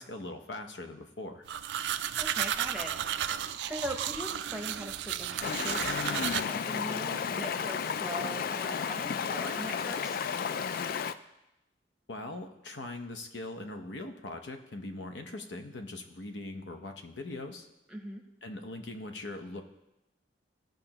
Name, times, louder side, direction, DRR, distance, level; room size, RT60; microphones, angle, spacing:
voice 1, 0.0-1.5 12.1-17.7 18.4-19.6, left 2 dB, 80° left, 6 dB, 0.8 m, -41 dB
sound 1, 1.5-6.4, right 10 dB, 70° right, 0.3 m, -33 dB
voice 2, 2.2-10.2 17.9-18.2, right 1 dB, 5° right, 2 dB, 0.8 m, -41 dB
Stream, 5.4-11.1, left 6 dB, 55° left, 0.3 m, -33 dB
15.0 x 5.2 x 2.9 m, 0.91 s
head